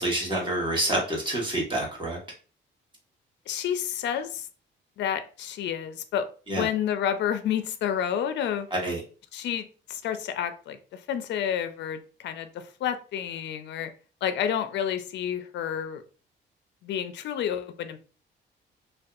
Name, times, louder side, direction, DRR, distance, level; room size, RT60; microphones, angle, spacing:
voice 1, 0.0-2.2 6.5-6.7 8.7-9.0, right 1 dB, 25° right, -2 dB, 1.2 m, -27 dB
voice 2, 3.5-4.5 5.0-8.7 9.3-13.9 14.2-16.0 16.8-18.0, left 9 dB, 65° left, 10 dB, 0.4 m, -30 dB
2.5 x 2.2 x 2.4 m, 0.37 s
cardioid pair, 90°, 20 cm